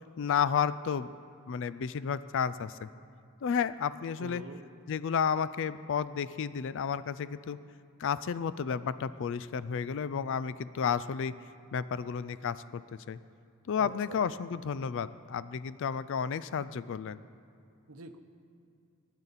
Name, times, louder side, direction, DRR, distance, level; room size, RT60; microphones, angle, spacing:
voice 1, 0.2-1.1 1.5-2.9 3.4-4.4 4.9-7.6 8.0-11.4 11.7-13.2 13.7-17.2, left 7 dB, 60° left, 15 dB, 0.4 m, -32 dB
voice 2, 4.2-4.6 13.8-14.3 17.9-18.2, right 3 dB, 70° right, 8 dB, 0.8 m, -44 dB
19.5 x 9.0 x 4.1 m, 2.5 s
head